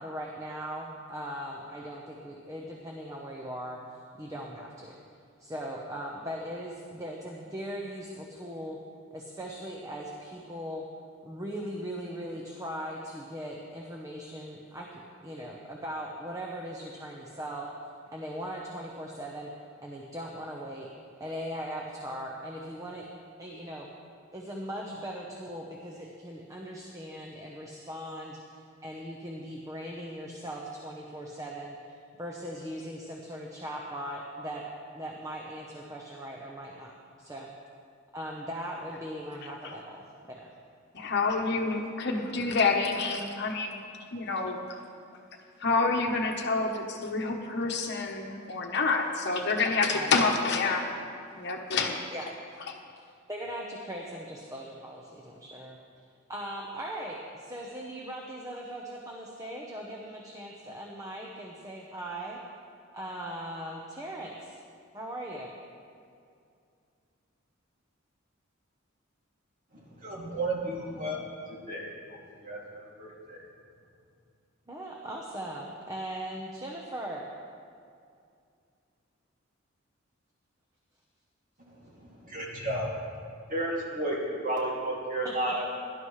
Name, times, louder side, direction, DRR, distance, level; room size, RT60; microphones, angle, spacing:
voice 1, 0.0-3.8 4.2-5.0 5.4-8.8 9.1-10.8 11.2-17.7 18.1-19.5 19.8-20.9 21.2-23.1 23.4-23.9 24.3-34.6 34.9-37.5 38.1-40.0 40.3-40.5 49.9-50.3 52.1-52.3 53.3-56.0 56.3-62.4 62.9-64.6 64.9-65.5 74.7-77.2 85.2-85.5, equal, 15° right, -1 dB, 0.9 m, -39 dB
voice 2, 40.9-43.8 44.1-44.6 45.6-50.8 51.4-52.0, left 4 dB, 55° left, 2 dB, 1.1 m, -28 dB
voice 3, 70.0-71.2 71.7-72.2 72.4-72.6 73.0-73.4 82.2-82.9 83.5-85.7, right 1 dB, 40° right, -4 dB, 2.6 m, -32 dB
17.5 x 11.5 x 3.3 m, 2.4 s
head